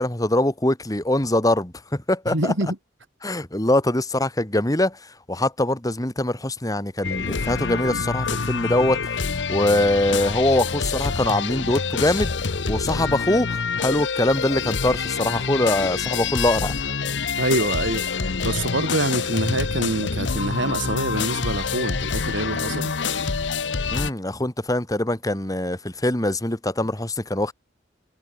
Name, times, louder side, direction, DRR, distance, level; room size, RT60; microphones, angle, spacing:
voice 1, 0.0-2.5 3.2-5.0 5.3-9.0 9.5-12.3 12.7-16.7 23.9-27.5, left 1 dB, 20° left, 2.2 m, -23 dB
voice 2, 2.3-2.8 17.4-22.9, right 1 dB, 80° right, 4.5 m, -26 dB
sound 1, 7.0-24.1, left 5 dB, 70° left, 1.0 m, -26 dB
head